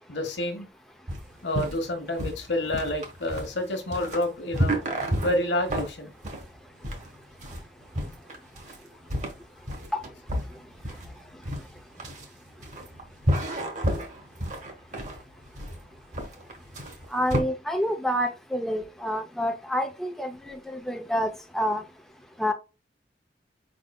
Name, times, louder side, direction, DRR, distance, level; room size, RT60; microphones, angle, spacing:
voice 1, 0.1-0.7 1.4-4.8 5.2-6.1, left 1 dB, 75° left, 1.1 m, -28 dB
sound 1, 1.1-17.4, equal, 45° right, 1.3 m, -31 dB
voice 2, 17.1-21.8 22.4-22.5, equal, ahead, 0.5 m, -28 dB
5.2 x 3.6 x 2.3 m
head